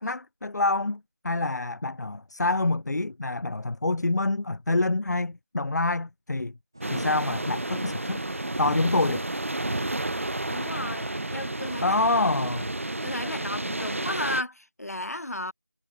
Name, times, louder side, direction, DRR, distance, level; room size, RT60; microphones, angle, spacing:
voice 1, 0.0-6.6 6.9-8.2 8.6-9.3 11.8-12.7, left 2 dB, 80° left, 0.4 m, -26 dB
sound 1, 6.7-12.5, right 1 dB, 15° right, 0.7 m, -47 dB
sound 2, 6.8-14.4, right 2 dB, 50° right, 0.6 m, -31 dB
voice 2, 10.5-12.4 13.0-15.5, left 1 dB, 65° left, 2.0 m, -34 dB
figure-of-eight pair, 175°, 9 cm